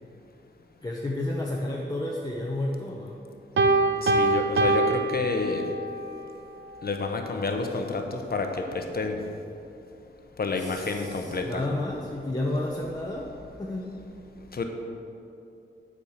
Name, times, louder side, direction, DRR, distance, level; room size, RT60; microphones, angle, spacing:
voice 1, 0.8-3.2 10.6-13.3 13.6-13.9, left 1 dB, 20° left, -3 dB, 0.8 m, -31 dB
Piano, 3.6-6.0, right 2 dB, 70° right, 0.6 m, -23 dB
voice 2, 4.0-5.6 6.8-9.2 10.4-11.6 14.5-14.6, left 3 dB, 50° left, 4 dB, 0.9 m, -29 dB
8.6 x 4.8 x 7.3 m, 2.7 s
wide cardioid pair, 115°, 20 cm